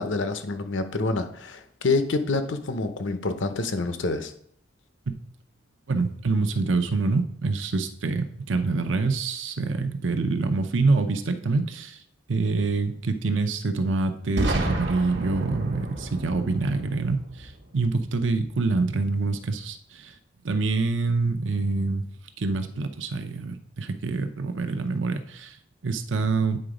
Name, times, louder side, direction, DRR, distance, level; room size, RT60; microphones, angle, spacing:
voice 1, 0.0-4.3, left 3 dB, 80° left, 9 dB, 0.8 m, -27 dB
voice 2, 5.9-12.0 12.3-20.1 20.4-22.0 22.4-25.6 25.8-26.6, right 3 dB, 80° right, 8 dB, 0.7 m, -26 dB
Boom, 14.4-18.2, right 1 dB, 60° right, 1.2 m, -31 dB
8.9 x 3.9 x 5.0 m, 0.64 s
head